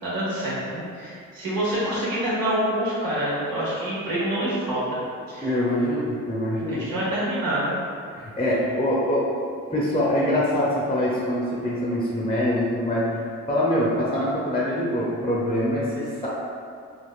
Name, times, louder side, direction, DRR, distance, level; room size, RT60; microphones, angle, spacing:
voice 1, 0.0-4.8 5.3-5.5 6.7-7.7, right 1 dB, 75° right, -8 dB, 1.3 m, -26 dB
voice 2, 5.4-6.9 8.2-16.3, left 1 dB, 15° left, -5 dB, 0.6 m, -24 dB
3.4 x 2.4 x 2.4 m, 2.3 s
supercardioid pair, 50°, 35 cm